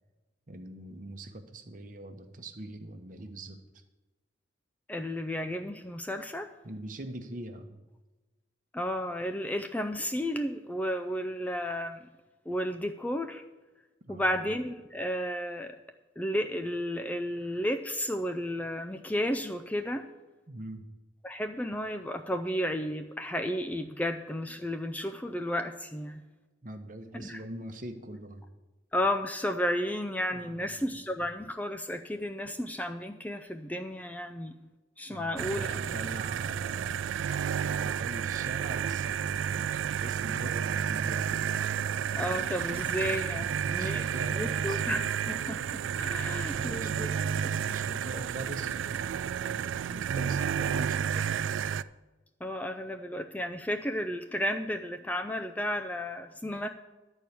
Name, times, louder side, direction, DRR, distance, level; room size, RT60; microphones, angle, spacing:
voice 1, 0.5-3.6 6.6-7.8 14.1-14.4 20.5-20.9 26.6-28.4 30.3-30.4 30.8-31.0 35.1-41.6 42.9-43.0 43.4-44.8 46.2-49.2 49.9-51.3, right 1 dB, 45° right, 7 dB, 1.0 m, -42 dB
voice 2, 4.9-6.5 8.7-12.1 12.5-13.4 14.1-15.8 16.2-20.1 21.2-26.2 27.2-27.4 28.9-34.5 35.0-35.9 42.2-47.2 47.5-47.7 49.5-49.6 52.4-56.7, equal, 10° left, 5 dB, 0.4 m, -33 dB
sound 1, 35.4-51.8, right 8 dB, 90° right, 0.3 m, -31 dB
12.0 x 4.6 x 8.4 m, 1.2 s
head